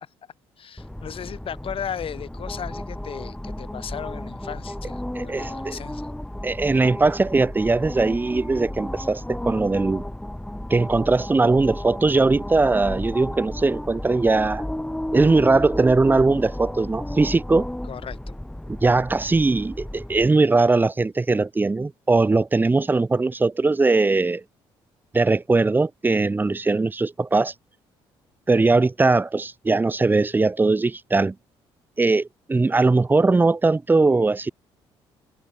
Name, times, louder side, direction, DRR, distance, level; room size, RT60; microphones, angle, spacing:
voice 1, 0.6-6.1 17.9-18.3, left 8 dB, 55° left, 4.4 m, -36 dB
sound 1, 0.8-20.3, left 1 dB, 5° left, 1.6 m, -33 dB
voice 2, 5.1-5.8 6.4-10.0 10.7-14.6 15.1-17.7 18.7-24.4 25.1-27.5 28.5-31.3 32.0-34.5, right 3 dB, 15° right, 0.6 m, -20 dB
supercardioid pair, 70°, 11 cm